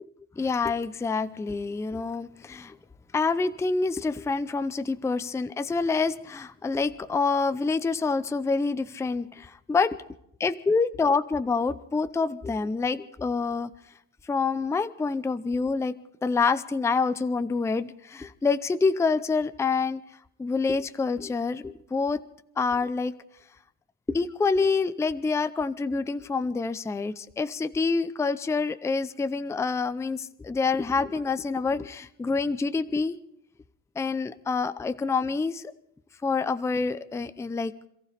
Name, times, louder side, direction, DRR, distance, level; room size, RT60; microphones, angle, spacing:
voice 1, 0.4-2.8 3.1-10.0 10.4-13.7 14.2-16.0 16.2-20.0 20.4-22.2 22.6-23.1 24.1-33.2 34.0-35.6 36.2-37.7, left 4 dB, 5° left, 13 dB, 0.5 m, -27 dB
27.0 x 15.0 x 3.4 m, 0.73 s
cardioid pair, 125°, 42 cm